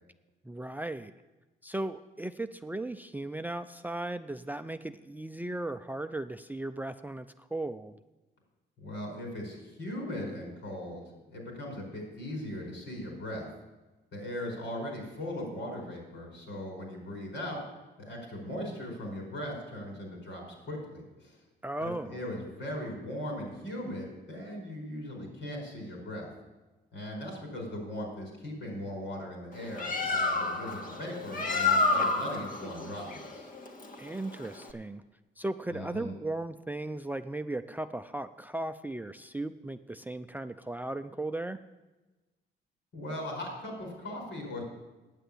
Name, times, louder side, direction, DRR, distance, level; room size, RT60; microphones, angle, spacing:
voice 1, 0.4-1.1 1.6-8.0 21.6-22.2 34.0-35.0 35.4-41.6, right 2 dB, 10° right, 11 dB, 0.4 m, -36 dB
voice 2, 8.8-11.0 11.3-13.5 14.1-17.6 18.0-21.4 21.8-26.3 26.9-33.5 35.7-36.1 42.9-44.6, left 1 dB, 70° left, 1 dB, 4.8 m, -39 dB
Bird, 29.5-34.7, left 3 dB, 45° left, 1.7 m, -30 dB
9.1 x 7.8 x 8.5 m, 1.1 s
cardioid pair, 90°, 20 cm